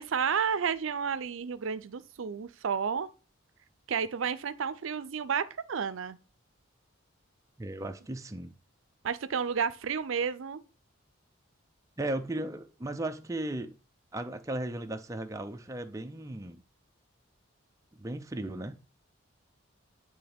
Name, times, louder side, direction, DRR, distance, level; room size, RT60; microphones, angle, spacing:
voice 1, 0.0-3.1 3.9-6.2 7.8-7.9 9.0-10.6, right 6 dB, 70° right, 0.5 m, -31 dB
voice 2, 7.6-8.6 12.0-13.7 14.1-16.6 18.0-18.7, right 1 dB, 15° right, 0.4 m, -36 dB
10.0 x 3.4 x 3.5 m
head